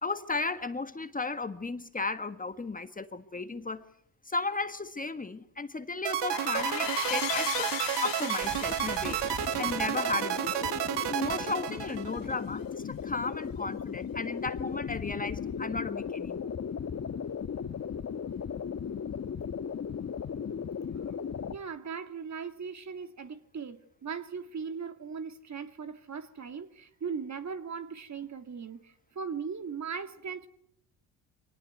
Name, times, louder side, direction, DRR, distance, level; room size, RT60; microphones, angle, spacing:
voice 1, 0.0-3.9 4.2-9.2 9.6-10.8 11.1-16.5, left 3 dB, 20° left, 1.5 m, -35 dB
sound 1, 6.0-12.3, right 12 dB, 70° right, 1.5 m, -31 dB
sound 2, 6.3-11.6, left 18 dB, 80° left, 0.9 m, -37 dB
sound 3, 8.4-21.5, left 7 dB, 35° left, 1.4 m, -37 dB
voice 2, 21.5-30.5, right 6 dB, 40° right, 2.3 m, -39 dB
24.0 x 19.0 x 9.5 m
cardioid pair, 85°, 43 cm